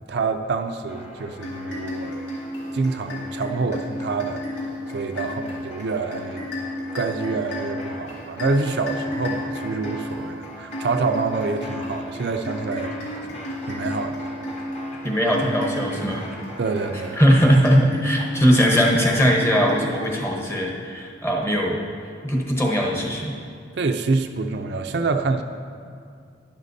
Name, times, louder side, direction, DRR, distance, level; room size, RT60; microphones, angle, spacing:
voice 1, 0.0-2.2 2.7-4.4 4.9-6.4 6.9-13.1 13.7-14.2 14.5-14.7 16.6-17.2 23.7-25.4, right 4 dB, 60° right, 6 dB, 0.4 m, -26 dB
sound 1, 0.9-18.7, left 1 dB, 35° left, 1.4 m, -41 dB
sound 2, 1.4-20.6, left 1 dB, 85° left, 2.4 m, -33 dB
voice 2, 15.0-16.2 17.2-21.8 22.2-23.3, equal, 15° left, -1 dB, 1.0 m, -20 dB
11.0 x 10.5 x 2.7 m, 2.3 s
head